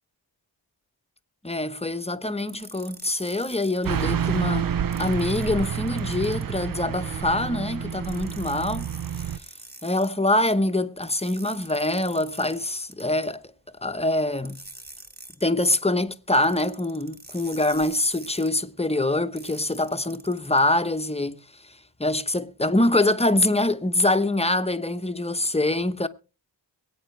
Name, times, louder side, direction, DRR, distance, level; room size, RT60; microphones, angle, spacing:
voice 1, 1.4-4.7 5.0-8.9 9.8-13.4 13.8-14.6 15.4-21.4 22.0-26.1, left 2 dB, 15° left, 0.9 m, -24 dB
sound 1, 2.5-3.9 4.9-6.6 7.9-10.1 11.0-13.3 14.4-15.5 16.3-18.6 19.4-20.6, right 1 dB, 20° right, 1.7 m, -45 dB
Car passing by / Truck, 3.8-9.4, right 8 dB, 50° right, 0.5 m, -29 dB
23.0 x 8.7 x 3.2 m
wide cardioid pair, 65°, 45 cm